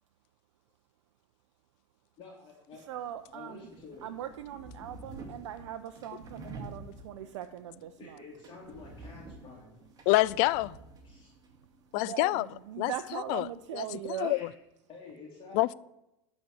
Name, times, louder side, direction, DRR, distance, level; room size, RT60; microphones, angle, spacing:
voice 1, 2.2-2.8 3.3-4.0 8.0-9.8 11.0-11.3 14.2-14.5 14.9-15.6, left 4 dB, 30° left, 2.6 m, -49 dB
sound 1, 2.9-13.9, right 2 dB, 25° right, 2.1 m, -50 dB
voice 2, 2.9-3.7 4.0-8.2 11.9-14.4, right 11 dB, 70° right, 0.6 m, -40 dB
voice 3, 10.1-10.7 11.9-12.5 12.8-12.9 13.3-13.5 13.7-13.8 14.2-14.4 15.5-15.7, left 20 dB, 50° left, 0.4 m, -26 dB
11.5 x 4.3 x 7.7 m
hypercardioid pair, 105°, 15 cm